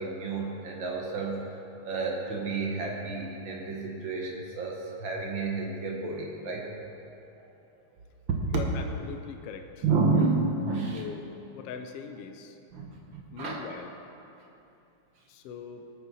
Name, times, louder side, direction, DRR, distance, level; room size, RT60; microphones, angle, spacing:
voice 1, 0.0-1.5 1.8-6.7 7.4-7.5 8.3-8.6 9.8-11.0 12.7-13.6, right 4 dB, 60° right, 0 dB, 1.3 m, -30 dB
voice 2, 8.5-9.8 10.9-11.2 11.5-12.6 13.3-13.9 15.3-15.9, left 6 dB, 85° left, 6 dB, 1.3 m, -41 dB
18.5 x 9.0 x 4.2 m, 2.8 s
omnidirectional pair, 3.7 m